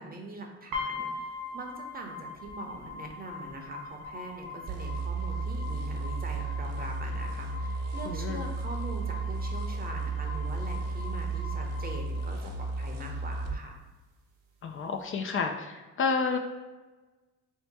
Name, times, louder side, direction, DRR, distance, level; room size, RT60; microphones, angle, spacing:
voice 1, 0.0-13.8, right 2 dB, 30° right, 2 dB, 0.8 m, -42 dB
sound 1, 0.7-12.7, left 3 dB, 85° right, 0.8 m, -42 dB
sound 2, 4.7-13.6, right 3 dB, 60° right, 0.9 m, -33 dB
voice 2, 8.1-8.5 14.6-16.4, left 5 dB, 45° left, 4 dB, 0.5 m, -30 dB
3.2 x 2.8 x 4.6 m, 1.2 s
cardioid pair, 90°, 30 cm